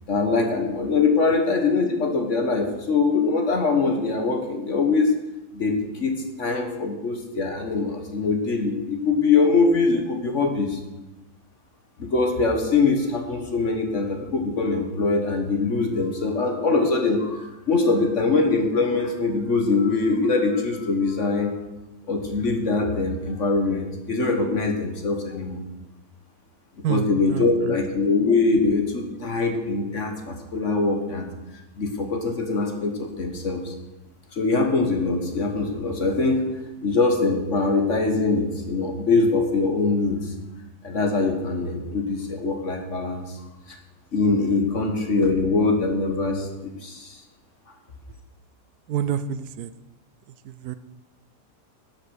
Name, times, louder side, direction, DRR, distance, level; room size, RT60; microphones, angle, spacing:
voice 1, 0.1-5.1 5.5-10.8 12.0-21.6 22.1-25.6 26.9-31.3 31.8-33.7 34.3-36.5 36.8-40.2 40.8-43.4 44.1-46.5 46.8-47.2, left 3 dB, 50° left, 4 dB, 1.6 m, -23 dB
voice 2, 26.8-27.8 48.9-49.7 50.4-50.8, right 9 dB, 75° right, 13 dB, 1.0 m, -28 dB
11.5 x 7.7 x 6.4 m, 1.0 s
omnidirectional pair, 1.7 m